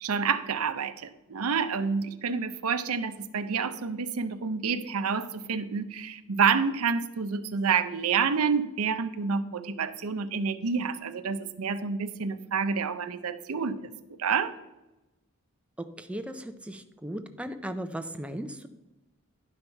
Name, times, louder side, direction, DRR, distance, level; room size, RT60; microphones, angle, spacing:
voice 1, 0.0-14.5, right 5 dB, 90° right, 11 dB, 0.6 m, -28 dB
voice 2, 15.8-18.7, right 1 dB, 5° right, 7 dB, 0.5 m, -37 dB
11.0 x 5.5 x 4.5 m, 0.99 s
head